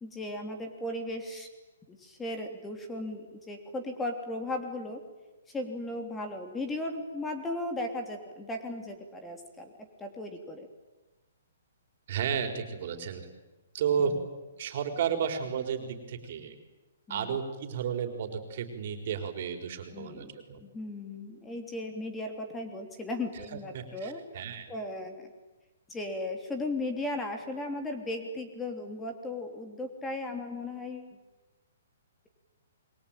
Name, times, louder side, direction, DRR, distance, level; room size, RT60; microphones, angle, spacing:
voice 1, 0.0-1.5 1.9-5.0 5.5-9.7 10.0-10.7 14.0-14.2 17.1-17.4 19.9-20.3 20.6-24.2 24.7-25.3 25.9-31.2, left 2 dB, 10° left, 5 dB, 3.1 m, -36 dB
voice 2, 12.1-13.3 13.7-14.2 14.6-16.6 17.1-20.6 23.5-24.7, right 7 dB, 50° right, 7 dB, 4.4 m, -32 dB
28.0 x 23.0 x 9.1 m, 1.1 s
hypercardioid pair, 150°, 0 cm